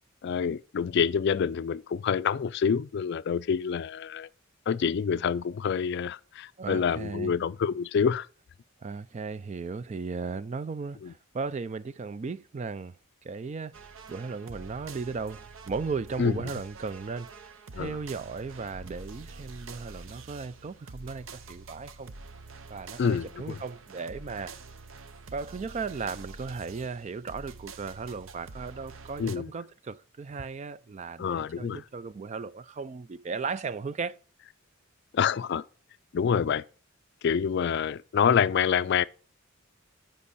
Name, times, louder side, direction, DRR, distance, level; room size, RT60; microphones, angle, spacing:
voice 1, 0.2-4.3 4.7-8.3 11.0-11.1 16.2-16.3 17.7-18.0 23.0-23.6 29.2-29.5 31.2-31.8 35.1-35.6 36.1-36.6 37.2-39.0, left 7 dB, 55° left, 0.4 m, -27 dB
voice 2, 6.6-7.4 8.8-12.9 13.2-13.7 14.1-17.3 17.7-22.1 22.7-24.6 25.3-34.2, right 4 dB, 35° right, 0.4 m, -36 dB
sound 1, 13.7-29.4, right 4 dB, 70° right, 0.7 m, -46 dB
14.0 x 5.2 x 4.1 m
head